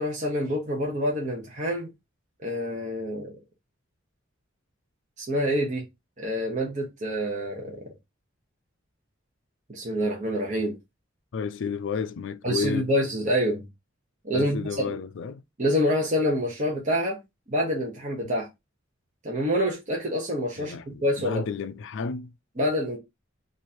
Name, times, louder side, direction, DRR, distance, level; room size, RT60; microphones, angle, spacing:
voice 1, 0.0-1.9 2.4-3.3 5.2-5.8 6.2-7.8 9.7-10.8 12.4-13.6 14.2-15.0 15.6-17.2 17.5-18.5 19.2-21.4 22.6-23.0, equal, 40° right, 1.0 m, -27 dB
voice 2, 11.3-12.9 14.3-15.4 20.6-22.3, left 5 dB, 65° left, 0.4 m, -31 dB
3.1 x 2.6 x 4.2 m
head